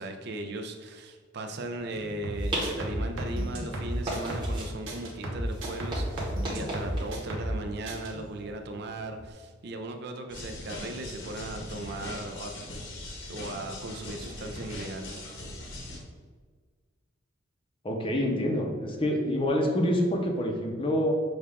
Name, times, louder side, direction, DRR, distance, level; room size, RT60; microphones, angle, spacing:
voice 1, 0.0-12.5 13.3-15.2, right 2 dB, 55° right, 5 dB, 0.4 m, -37 dB
sound 1, 1.8-9.3, right 1 dB, 25° right, 1.1 m, -39 dB
sound 2, 2.2-4.6 4.9-7.6 7.9-8.1, equal, 75° right, 0.9 m, -32 dB
sound 3, 10.3-16.0, left 1 dB, 65° left, 1.0 m, -40 dB
voice 2, 17.8-21.1, left 1 dB, 25° left, 2 dB, 0.6 m, -27 dB
6.3 x 2.3 x 3.5 m, 1.5 s
head